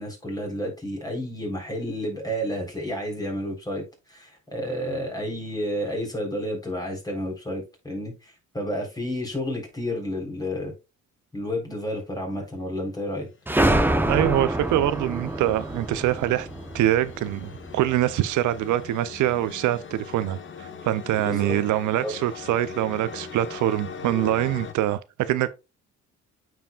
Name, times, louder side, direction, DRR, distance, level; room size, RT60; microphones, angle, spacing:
voice 1, 0.0-10.7 11.3-13.3 21.2-21.6 22.0-22.1, equal, 10° left, 3.7 m, -31 dB
sound 1, 13.2-24.7, left 5 dB, 40° left, 1.1 m, -41 dB
sound 2, 13.5-17.9, right 1 dB, 5° right, 0.7 m, -26 dB
voice 2, 14.1-16.5 16.7-25.5, right 13 dB, 75° right, 0.5 m, -24 dB
9.0 x 4.7 x 2.3 m
cardioid pair, 90°, 30 cm